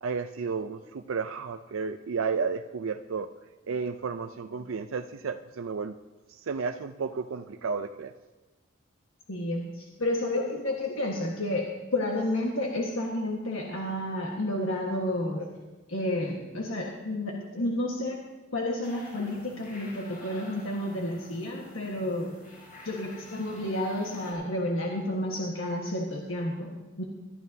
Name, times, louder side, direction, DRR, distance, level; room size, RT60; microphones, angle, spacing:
voice 1, 0.0-3.3 3.7-6.0 6.3-8.1, right 5 dB, 85° right, 8 dB, 0.5 m, -32 dB
voice 2, 9.3-15.5 15.9-18.2 18.5-22.3 22.8-27.0, left 1 dB, 80° left, -1 dB, 1.5 m, -31 dB
sound 1, 18.8-24.3, left 1 dB, 45° left, 5.6 m, -49 dB
21.0 x 12.5 x 2.8 m, 1.2 s
head